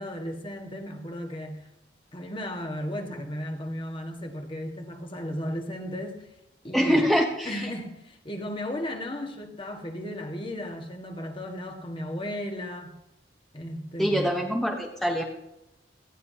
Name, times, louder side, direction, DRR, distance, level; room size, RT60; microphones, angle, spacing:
voice 1, 0.0-1.6 2.1-6.2 6.6-7.1 7.4-12.9 13.5-14.4, equal, 30° left, 4 dB, 1.6 m, -35 dB
voice 2, 6.7-7.7 14.0-15.2, equal, ahead, 1 dB, 0.9 m, -24 dB
18.5 x 14.0 x 2.8 m, 0.90 s
head